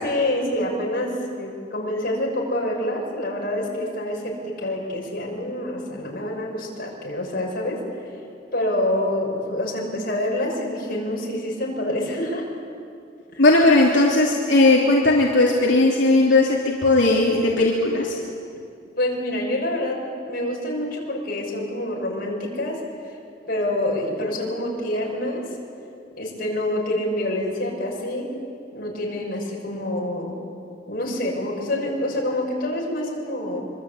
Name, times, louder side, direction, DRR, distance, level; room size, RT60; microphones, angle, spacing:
voice 1, 0.0-7.8 8.5-12.5 13.3-13.4 19.0-20.0 20.3-22.8 23.5-25.5 26.2-28.3 28.7-30.4 30.9-33.6, left 1 dB, 50° left, -1 dB, 6.6 m, -27 dB
voice 2, 13.4-18.1, left 2 dB, 80° left, -3 dB, 3.1 m, -17 dB
25.5 x 25.5 x 8.6 m, 2.4 s
head